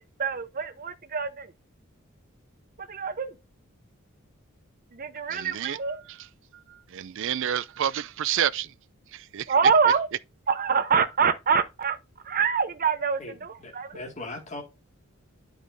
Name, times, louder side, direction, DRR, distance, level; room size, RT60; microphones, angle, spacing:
voice 1, 0.2-1.5 2.9-3.3 4.9-6.0 9.5-10.1 10.5-12.0 12.3-14.0, right 6 dB, 45° right, 0.8 m, -25 dB
voice 2, 5.3-8.7 9.1-9.6 9.9-10.0, right 10 dB, 60° right, 0.4 m, -30 dB
voice 3, 13.2-14.6, left 2 dB, 35° left, 2.1 m, -39 dB
10.5 x 4.8 x 2.6 m
head